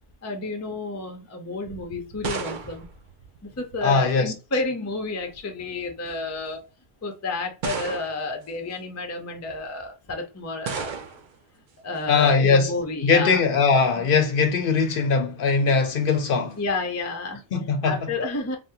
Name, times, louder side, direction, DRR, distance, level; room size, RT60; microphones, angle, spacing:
voice 1, 0.2-2.9 3.4-6.7 7.0-10.9 11.5-13.4 14.0-14.1 16.6-17.4 17.8-18.6, left 3 dB, 25° left, 0.4 m, -31 dB
sound 1, 1.6-4.0 5.0-5.5 6.3-6.4 7.6-8.4 10.6-11.4, right 5 dB, 55° right, 0.6 m, -34 dB
voice 2, 3.8-4.3 12.1-12.7 13.0-16.6 17.5-18.0, left 4 dB, 60° left, 0.7 m, -20 dB
3.5 x 2.1 x 2.8 m
omnidirectional pair, 1.1 m